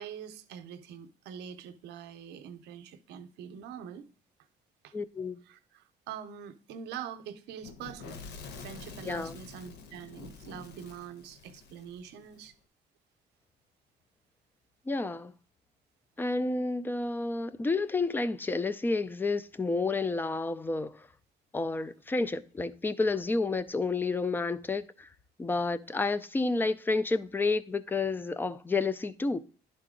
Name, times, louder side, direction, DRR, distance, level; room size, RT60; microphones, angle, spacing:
voice 1, 0.0-4.1 4.8-4.9 5.5-8.2 8.6-12.5, right 8 dB, 85° right, 0.7 m, -44 dB
voice 2, 4.9-5.4 9.1-9.4 14.9-15.3 16.2-21.1 21.5-25.1 25.4-29.4, left 3 dB, 10° left, 0.4 m, -30 dB
Fire / Explosion, 7.6-12.5, left 4 dB, 80° left, 1.0 m, -47 dB
11.0 x 3.9 x 3.7 m
cardioid pair, 110°, 17 cm